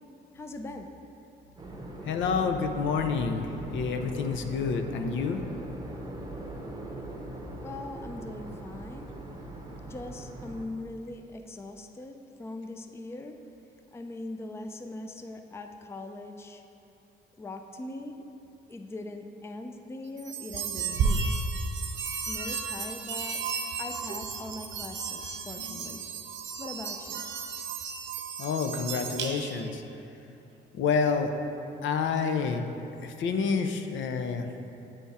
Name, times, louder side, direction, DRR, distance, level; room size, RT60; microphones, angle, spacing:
voice 1, 0.3-0.9 7.5-9.1 9.8-13.4 13.9-16.6 17.4-18.2 18.7-21.3 22.2-23.4 23.8-26.0 26.6-27.3, left 2 dB, 15° left, 5 dB, 0.4 m, -41 dB
sound 1, 1.6-10.7, right 1 dB, 20° right, 0.7 m, -41 dB
voice 2, 2.1-5.4 28.4-29.8 30.7-31.3 31.8-32.6 33.0-34.5, left 5 dB, 70° left, 6 dB, 0.5 m, -28 dB
sound 2, 20.2-29.7, right 5 dB, 70° right, 0.7 m, -33 dB
8.5 x 3.5 x 4.1 m, 2.8 s
cardioid pair, 90°, 20 cm